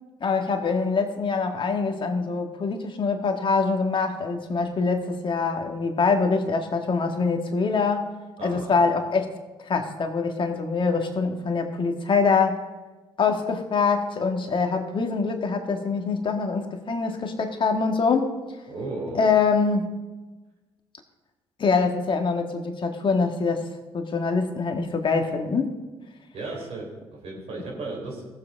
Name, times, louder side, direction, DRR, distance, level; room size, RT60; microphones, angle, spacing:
voice 1, 0.2-8.1 8.4-9.3 9.7-12.6 13.2-18.4 19.2-19.9 21.6-23.7 23.9-25.8, left 4 dB, 45° left, 5 dB, 1.9 m, -24 dB
voice 2, 8.4-8.8 18.7-19.3 26.3-28.2, right 2 dB, 60° right, -2 dB, 4.0 m, -35 dB
19.0 x 7.4 x 3.6 m, 1.2 s
hypercardioid pair, 50°, 12 cm